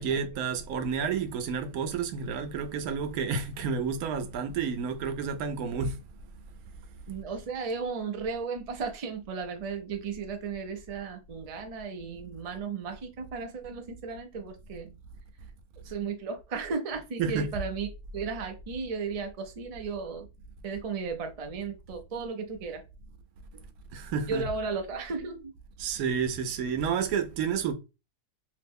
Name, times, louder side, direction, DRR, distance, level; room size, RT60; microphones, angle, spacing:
voice 1, 0.0-6.0 17.2-17.5 23.9-24.5 25.8-27.7, right 6 dB, 85° right, 1.1 m, -30 dB
voice 2, 7.1-14.9 15.8-17.9 18.1-20.3 20.6-22.8 23.5-23.6 24.3-25.5, right 5 dB, 45° right, 0.5 m, -35 dB
3.0 x 2.1 x 3.4 m
omnidirectional pair, 1.5 m